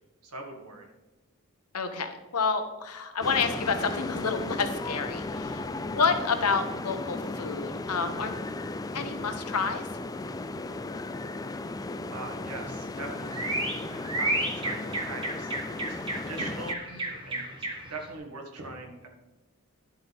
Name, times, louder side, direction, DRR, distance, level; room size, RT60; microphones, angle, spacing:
voice 1, 0.2-0.9 12.1-15.5 15.9-19.1, right 2 dB, 85° right, 1 dB, 1.9 m, -42 dB
voice 2, 1.7-8.4 8.9-9.8 16.9-17.1, left 5 dB, 85° left, 7 dB, 1.1 m, -29 dB
sound 1, 3.2-16.7, left 2 dB, 15° left, 0.3 m, -35 dB
sound 2, 12.5-18.1, right 1 dB, 20° right, 1.5 m, -33 dB
10.5 x 7.9 x 3.5 m, 1.1 s
head